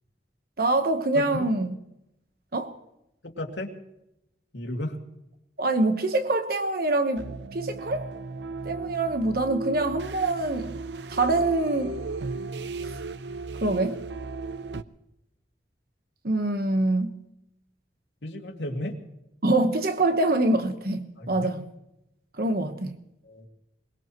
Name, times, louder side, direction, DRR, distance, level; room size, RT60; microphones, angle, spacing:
voice 1, 0.6-1.8 2.5-2.7 5.6-7.2 7.5-8.1 8.6-10.8 11.1-12.0 13.6-14.0 16.2-17.1 19.4-21.6 22.4-23.0, right 2 dB, 55° right, 1.1 m, -25 dB
voice 2, 1.1-1.5 3.2-3.7 4.5-5.0 18.2-19.0 21.2-21.5 23.2-23.5, left 1 dB, 85° left, 2.3 m, -34 dB
sound 1, 7.1-14.8, right 3 dB, 75° right, 0.6 m, -36 dB
22.5 x 20.5 x 3.0 m
head